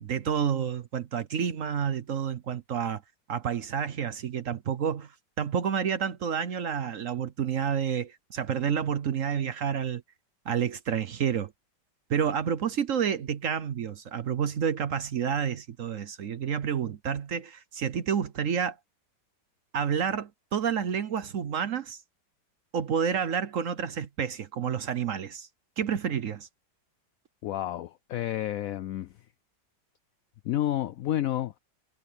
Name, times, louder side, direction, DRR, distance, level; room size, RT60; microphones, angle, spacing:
voice 1, 0.0-3.0 3.3-5.1 5.4-10.0 10.5-11.5 12.1-18.8 19.7-22.0 22.7-25.5 25.8-26.5, right 7 dB, 55° right, 1.0 m, -29 dB
voice 2, 27.4-29.1 30.4-31.6, left 12 dB, 75° left, 0.7 m, -30 dB
omnidirectional pair, 2.0 m